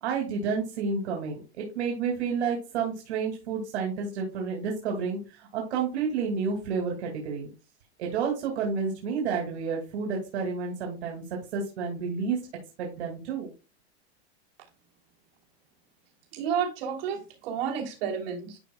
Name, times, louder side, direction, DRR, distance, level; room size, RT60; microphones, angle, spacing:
voice 1, 0.0-7.5 8.0-11.2 11.5-12.4 12.8-13.5, right 5 dB, 80° right, 1 dB, 2.5 m, -30 dB
voice 2, 16.3-18.6, right 7 dB, 60° right, -1 dB, 3.2 m, -31 dB
11.5 x 5.2 x 2.3 m, 0.30 s
supercardioid pair, 160°, 33 cm